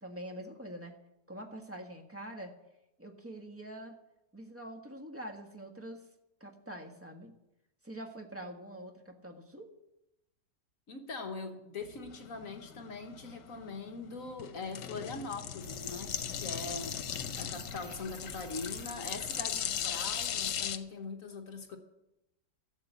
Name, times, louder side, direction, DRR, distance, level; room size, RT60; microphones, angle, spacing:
voice 1, 0.0-0.9 1.3-2.5 3.0-4.0 4.3-6.0 6.4-7.3 7.8-9.7, right 1 dB, 10° right, 3 dB, 1.4 m, -45 dB
voice 2, 10.9-17.0 17.4-21.8, left 3 dB, 55° left, 5 dB, 1.5 m, -42 dB
sound 1, 11.8-20.8, left 9 dB, 85° left, 1.4 m, -38 dB
sound 2, 15.6-20.6, right 4 dB, 45° right, 1.3 m, -51 dB
13.5 x 7.6 x 8.2 m, 0.89 s
omnidirectional pair, 1.8 m